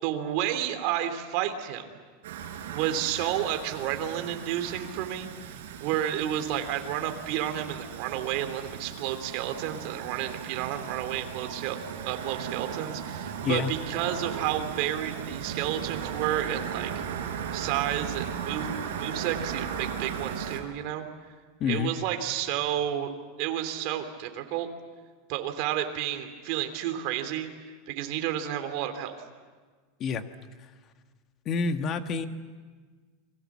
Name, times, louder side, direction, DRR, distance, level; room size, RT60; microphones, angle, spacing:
voice 1, 0.0-2.0 2.7-11.8 12.0-16.9 17.5-21.1 21.7-23.1 23.4-24.7 25.3-27.5 27.9-29.2, right 11 dB, 50° right, 6 dB, 2.9 m, -31 dB
sound 1, 2.2-20.6, right 8 dB, 85° right, 4.4 m, -37 dB
voice 2, 21.6-21.9 30.0-30.2 31.4-32.3, left 5 dB, 30° left, 8 dB, 1.4 m, -27 dB
29.5 x 23.5 x 7.4 m, 1.4 s
supercardioid pair, 160°, 0 cm